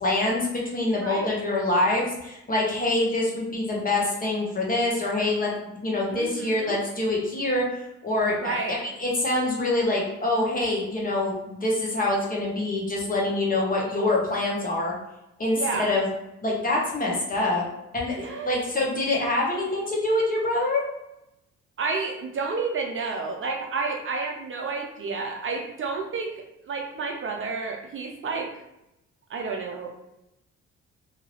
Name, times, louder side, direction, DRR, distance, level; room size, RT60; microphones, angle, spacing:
voice 1, 0.0-14.9 15.4-16.1 16.4-17.6 17.9-20.8, left 2 dB, 30° left, -3 dB, 1.0 m, -25 dB
voice 2, 1.0-1.4 6.1-6.7 8.4-8.8 15.5-15.9 18.2-18.6 21.8-28.5 29.3-29.9, right 4 dB, 45° right, 2 dB, 0.5 m, -30 dB
2.8 x 2.6 x 3.0 m, 0.88 s
cardioid pair, 90°, 30 cm